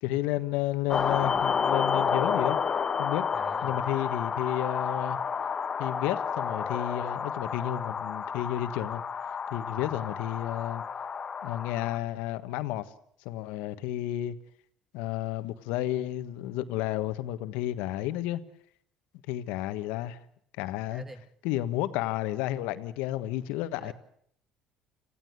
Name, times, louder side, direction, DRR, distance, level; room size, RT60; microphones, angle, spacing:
voice 1, 0.0-2.6 3.0-3.2 3.6-5.2 5.8-9.0 9.5-10.8 11.4-12.8 13.2-14.4 14.9-18.4 19.3-20.2 20.6-21.0 21.4-23.9, left 14 dB, 75° left, 1.4 m, -31 dB
sound 1, 0.9-12.0, left 6 dB, 35° left, 1.1 m, -30 dB
voice 2, 3.3-3.8 9.7-9.9 20.9-21.2 23.8-23.9, right 1 dB, 15° right, 2.3 m, -46 dB
27.0 x 16.0 x 8.0 m
supercardioid pair, 75°, 2 cm